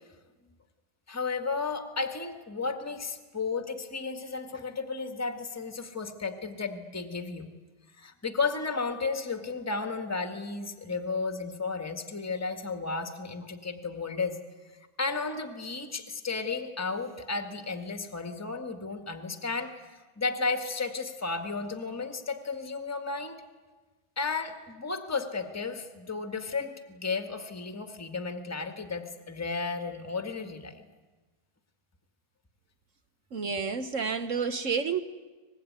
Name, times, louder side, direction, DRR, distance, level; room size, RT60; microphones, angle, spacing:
voice 1, 1.1-7.5 8.0-14.4 15.0-19.7 20.2-23.4 24.2-30.8, left 4 dB, 10° left, 6 dB, 1.4 m, -33 dB
voice 2, 33.3-35.0, right 5 dB, 50° right, 10 dB, 1.0 m, -30 dB
24.5 x 20.0 x 9.5 m, 1.3 s
omnidirectional pair, 2.4 m